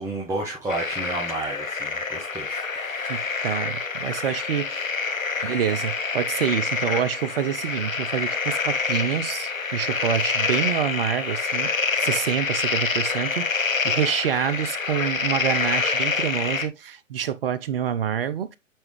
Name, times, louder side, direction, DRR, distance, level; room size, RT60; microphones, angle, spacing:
voice 1, 0.0-3.5 5.3-5.6, right 2 dB, 5° right, 1.0 m, -32 dB
sound 1, 0.7-16.7, left 4 dB, 85° left, 1.0 m, -27 dB
voice 2, 3.1-4.9 5.4-18.6, right 9 dB, 45° right, 0.7 m, -27 dB
8.8 x 3.6 x 3.2 m
figure-of-eight pair, 130°, 39 cm